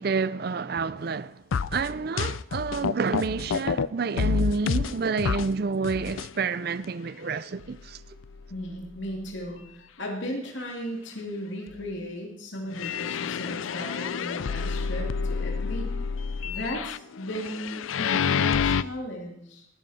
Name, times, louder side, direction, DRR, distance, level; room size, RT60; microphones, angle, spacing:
voice 1, 0.0-1.4 1.7-8.0, right 4 dB, 50° right, 0.5 m, -29 dB
sound 1, 1.5-3.9 4.2-5.5 5.8-6.3 6.8-6.9 7.6-7.7 8.2-8.3 12.7-18.8, left 6 dB, 85° left, 0.4 m, -28 dB
voice 2, 8.5-15.9 16.4-19.7, equal, 70° left, 2.4 m, -36 dB
19.0 x 10.5 x 4.2 m
head